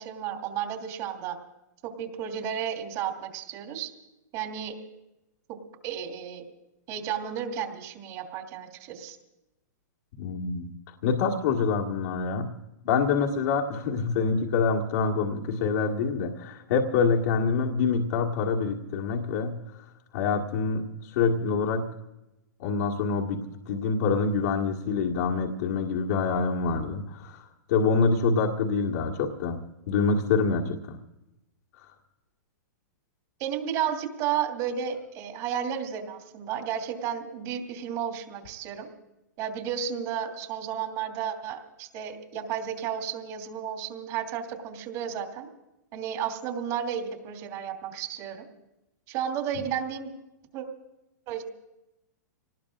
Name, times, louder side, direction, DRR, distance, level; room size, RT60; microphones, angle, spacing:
voice 1, 0.0-1.4 1.8-3.9 4.3-4.8 5.5-5.6 5.8-6.4 6.9-9.2 33.4-38.9 39.4-45.5 45.9-48.4 49.1-50.1 50.5-50.6 51.3-51.4, right 8 dB, 40° right, 2 dB, 2.7 m, -32 dB
voice 2, 10.2-12.5 12.8-19.9 20.1-21.8 22.6-29.6 29.9-31.0 31.8-31.9, left 5 dB, 60° left, -1 dB, 1.8 m, -26 dB
26.5 x 19.0 x 2.6 m, 0.92 s
hypercardioid pair, 125°, 10 cm